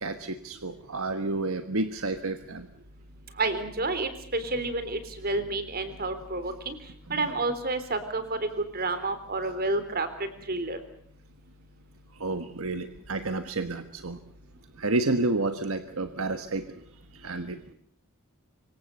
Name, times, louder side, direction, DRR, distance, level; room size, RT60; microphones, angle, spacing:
voice 1, 0.0-2.7 7.1-7.2 12.2-14.2 14.8-16.6 17.2-17.6, right 2 dB, 75° right, 9 dB, 1.4 m, -30 dB
voice 2, 3.4-6.8 7.1-10.1 10.5-10.8, right 2 dB, 45° right, 11 dB, 3.7 m, -30 dB
26.0 x 24.5 x 6.8 m, 0.63 s
head